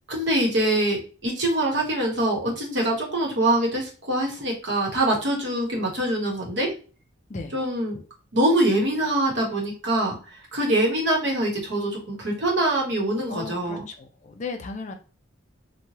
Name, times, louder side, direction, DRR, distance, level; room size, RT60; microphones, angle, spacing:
voice 1, 0.1-6.7 7.5-8.0 8.3-10.2 10.5-13.8, right 1 dB, 55° right, -1 dB, 0.9 m, -24 dB
voice 2, 13.3-14.9, left 4 dB, 35° left, 6 dB, 0.3 m, -35 dB
3.0 x 2.2 x 2.8 m, 0.37 s
head